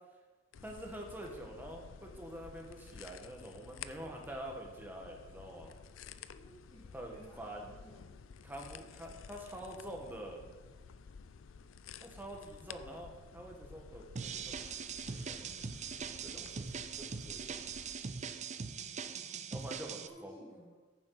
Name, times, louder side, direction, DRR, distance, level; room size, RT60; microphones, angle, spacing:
sound 1, 0.5-18.0, left 6 dB, 75° left, 0.4 m, -53 dB
voice 1, 0.6-5.7 6.9-7.7 8.4-10.4 12.0-14.7 15.1-15.7 16.2-17.6 19.5-20.4, right 1 dB, 10° right, 0 dB, 1.6 m, -46 dB
voice 2, 6.4-8.0 19.9-20.7, equal, 20° left, -6 dB, 1.9 m, -56 dB
sound 2, 14.2-20.1, right 6 dB, 35° right, 0.5 m, -41 dB
14.5 x 7.3 x 4.1 m, 1.3 s
head